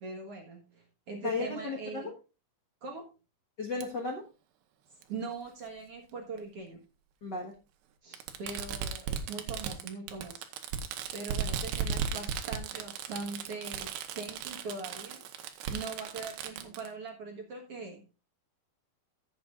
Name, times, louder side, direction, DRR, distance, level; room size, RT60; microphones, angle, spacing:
voice 1, 0.0-2.1 2.8-3.1 4.9-6.8 8.0-10.4 11.1-18.1, right 4 dB, 50° right, 1 dB, 1.8 m, -41 dB
voice 2, 1.2-2.1 3.6-4.2 7.2-7.6, left 3 dB, 85° left, 1 dB, 0.9 m, -34 dB
Fireworks, 3.8-3.9 5.0-5.1 6.4-6.5 8.1-16.9, right 7 dB, 85° right, 3.1 m, -36 dB
16.0 x 7.8 x 2.5 m, 0.29 s
omnidirectional pair, 4.7 m